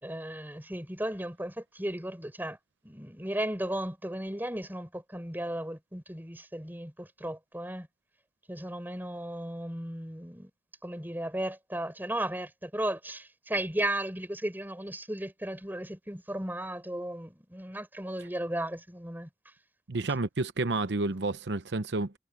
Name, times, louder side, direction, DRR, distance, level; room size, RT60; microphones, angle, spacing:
voice 1, 0.0-2.6 2.8-7.9 8.5-10.5 10.8-19.3, right 1 dB, 10° right, 4.8 m, -35 dB
voice 2, 19.9-22.2, right 3 dB, 80° right, 0.8 m, -30 dB
head